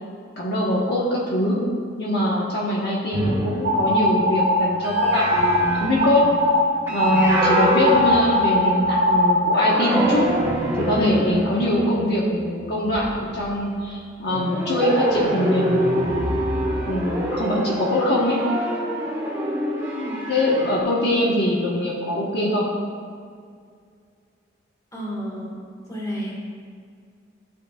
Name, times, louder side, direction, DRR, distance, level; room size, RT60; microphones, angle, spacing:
voice 1, 0.4-1.6 2.0-6.2 6.9-10.3 10.8-16.4 16.9-18.4 20.3-22.6, left 1 dB, 55° left, -5 dB, 1.4 m, -23 dB
sound 1, 3.1-9.0 9.5-13.5 14.3-20.8, right 1 dB, 10° right, 1.5 m, -26 dB
sound 2, 3.6-4.6 4.9-5.6 6.0-6.6 7.0-9.7, equal, 55° right, 2.0 m, -20 dB
voice 2, 19.7-20.3 24.9-25.6 25.9-26.3, equal, 15° left, -5 dB, 1.9 m, -31 dB
13.0 x 8.1 x 2.5 m, 2.1 s
head